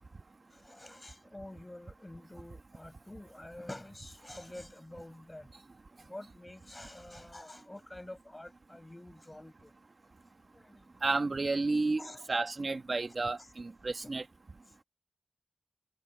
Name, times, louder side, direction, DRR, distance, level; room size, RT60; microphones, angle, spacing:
voice 1, 0.5-5.5 6.0-9.7 10.5-10.9 12.0-12.3 13.4-13.5 14.0-14.1, left 1 dB, 25° left, 6.2 m, -48 dB
voice 2, 11.0-12.0 12.3-14.2, right 3 dB, 70° right, 1.2 m, -31 dB
wide cardioid pair, 50°, 0 cm